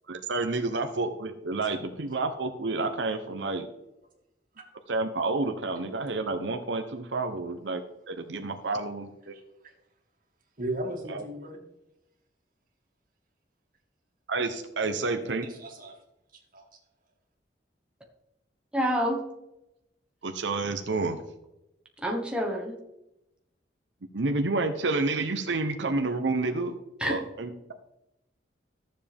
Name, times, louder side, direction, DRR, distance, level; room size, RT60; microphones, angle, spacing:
voice 1, 0.1-3.7 4.9-7.8 8.1-9.3 11.1-11.2 14.3-15.5 20.2-21.2 24.1-26.7 27.1-27.7, right 3 dB, 85° right, 6 dB, 0.8 m, -29 dB
voice 2, 9.3-9.7 10.6-11.6 14.8-15.0 15.4-16.0 16.3-16.8, right 1 dB, 50° right, 1 dB, 2.3 m, -37 dB
voice 3, 18.7-19.2 22.0-22.8 27.0-27.2, equal, 5° right, 0 dB, 1.3 m, -27 dB
13.5 x 7.5 x 3.5 m, 0.89 s
head